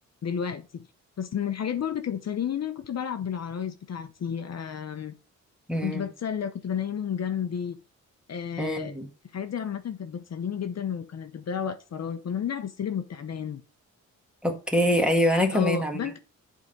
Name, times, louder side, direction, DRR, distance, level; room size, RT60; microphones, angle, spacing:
voice 1, 0.2-0.9 1.2-5.1 5.8-7.8 8.3-9.0 9.3-13.6 15.5-16.2, left 8 dB, 55° left, 0.8 m, -31 dB
voice 2, 5.7-6.0 8.6-9.1 14.4-16.2, equal, 5° right, 1.7 m, -25 dB
8.1 x 3.7 x 5.2 m
cardioid pair, 110°, 32 cm